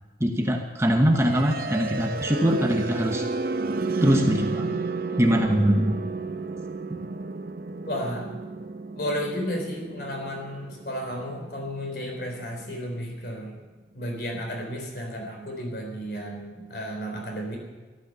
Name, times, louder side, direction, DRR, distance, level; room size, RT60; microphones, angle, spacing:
voice 1, 0.2-3.3 4.0-4.8 5.2-6.0 6.9-7.0, equal, 15° right, 3 dB, 1.1 m, -22 dB
sound 1, 1.1-13.0, right 3 dB, 50° right, 0.8 m, -32 dB
voice 2, 7.9-8.3 8.9-13.5 13.9-17.6, equal, 55° left, 2 dB, 4.0 m, -33 dB
13.5 x 12.5 x 6.8 m, 1.3 s
head